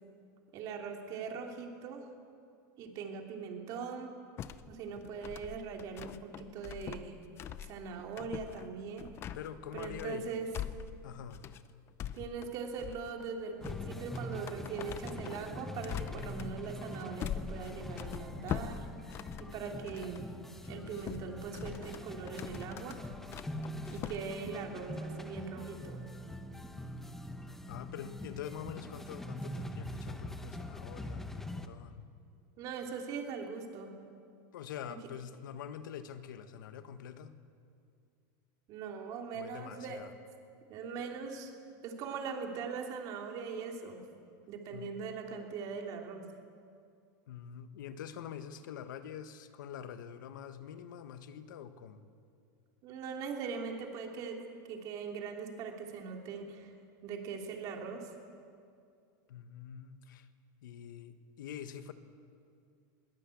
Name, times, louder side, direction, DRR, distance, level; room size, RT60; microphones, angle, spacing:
voice 1, 0.5-2.0 2.8-4.1 4.7-7.2 7.6-9.1 9.7-10.5 12.1-18.9 19.4-20.3 20.7-23.0 23.9-26.0 32.6-34.0 38.7-40.0 40.7-41.5 41.8-44.0 44.5-46.3 52.8-54.4 54.7-56.7 57.0-58.1, right 5 dB, 35° right, 2 dB, 3.1 m, -41 dB
sound 1, 4.4-20.3 20.6-24.2, left 10 dB, 25° left, 0.6 m, -44 dB
voice 2, 9.3-10.3 11.0-11.4 23.5-24.0 27.7-32.1 34.5-37.3 39.3-40.1 44.7-44.9 47.3-52.0 59.3-60.3 60.6-61.9, left 9 dB, 90° left, 10 dB, 1.5 m, -45 dB
sound 2, 13.6-31.7, left 1 dB, 5° left, 0.9 m, -43 dB
21.5 x 19.5 x 8.5 m, 2.4 s
supercardioid pair, 170°, 10 cm